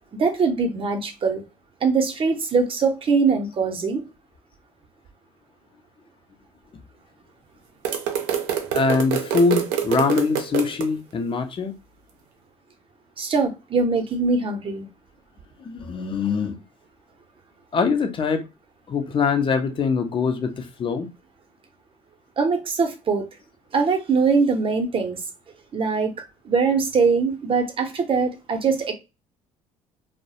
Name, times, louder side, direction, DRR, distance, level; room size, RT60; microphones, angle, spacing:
voice 1, 0.2-1.4 1.8-4.1 13.2-14.9 22.4-23.3 23.7-25.2 25.7-28.9, right 4 dB, 40° right, 0.7 m, -22 dB
sound 1, 7.8-10.9, right 9 dB, 80° right, 0.6 m, -26 dB
voice 2, 8.7-11.7 15.6-16.6 17.7-18.4 18.9-21.1, left 4 dB, 35° left, 0.6 m, -23 dB
2.2 x 2.0 x 2.7 m
supercardioid pair, 70°, 14 cm